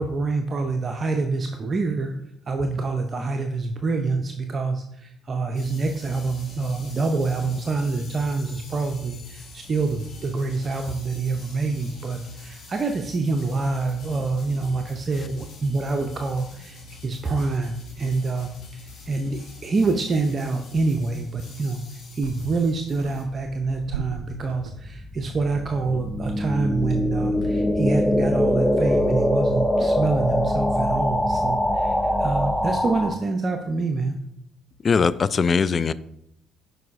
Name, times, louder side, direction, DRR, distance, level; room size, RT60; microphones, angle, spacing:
voice 1, 0.0-2.1 2.5-21.8 22.1-34.2, right 3 dB, 40° right, 5 dB, 0.6 m, -26 dB
sound 1, 5.5-23.2, left 3 dB, 60° left, 2.2 m, -44 dB
sound 2, 20.7-21.3 21.8-22.7 23.0-25.0, right 6 dB, 85° right, 0.3 m, -38 dB
sound 3, 23.8-33.1, left 1 dB, ahead, 0.6 m, -23 dB
voice 2, 34.8-35.9, left 5 dB, 40° left, 17 dB, 0.3 m, -20 dB
9.2 x 4.7 x 2.5 m, 0.78 s
hypercardioid pair, 50°, 0 cm